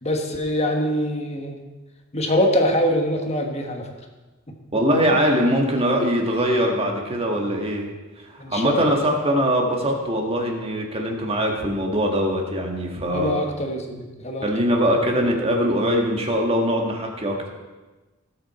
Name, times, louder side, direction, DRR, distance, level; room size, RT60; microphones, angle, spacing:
voice 1, 0.0-1.6 2.1-3.9 8.4-9.0 13.1-14.7, equal, 30° left, 3 dB, 1.4 m, -24 dB
voice 2, 4.7-7.9 8.3-13.4 14.4-17.5, equal, 30° right, 1 dB, 1.8 m, -22 dB
19.0 x 6.8 x 4.3 m, 1.2 s
head